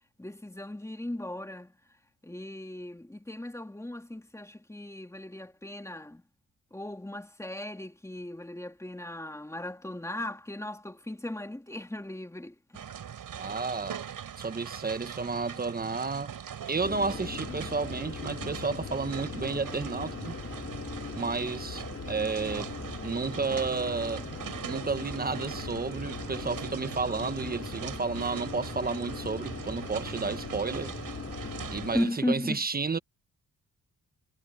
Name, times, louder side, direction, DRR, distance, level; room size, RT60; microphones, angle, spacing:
voice 1, 0.2-1.7 2.2-6.2 6.7-12.9 31.9-32.6, left 1 dB, 10° left, 3.0 m, -36 dB
sound 1, 12.7-32.1, right 8 dB, 65° right, 6.4 m, -41 dB
voice 2, 13.4-14.1 14.4-16.3 16.7-20.4 21.1-22.7 23.0-24.3 24.7-30.9 31.7-33.0, right 4 dB, 25° right, 1.2 m, -32 dB
sound 2, 16.8-32.0, left 5 dB, 35° left, 2.5 m, -40 dB
cardioid pair, 110°, 35 cm